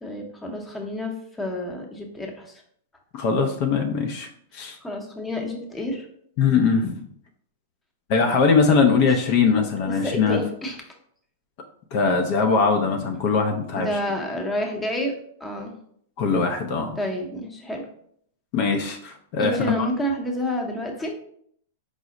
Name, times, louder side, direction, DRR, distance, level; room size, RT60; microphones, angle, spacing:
voice 1, 0.0-2.6 4.8-6.1 9.1-9.3 9.6-9.7 10.0-10.8 13.8-15.1 15.4-15.7 17.0-17.8 19.4-21.1, left 1 dB, 10° left, 1 dB, 0.7 m, -29 dB
voice 2, 3.1-4.3 4.5-4.8 6.4-7.0 8.1-10.4 11.9-13.9 16.2-16.9 18.5-19.9, left 5 dB, 50° left, 4 dB, 0.5 m, -21 dB
4.9 x 2.0 x 3.7 m, 0.65 s
hypercardioid pair, 125°, 0 cm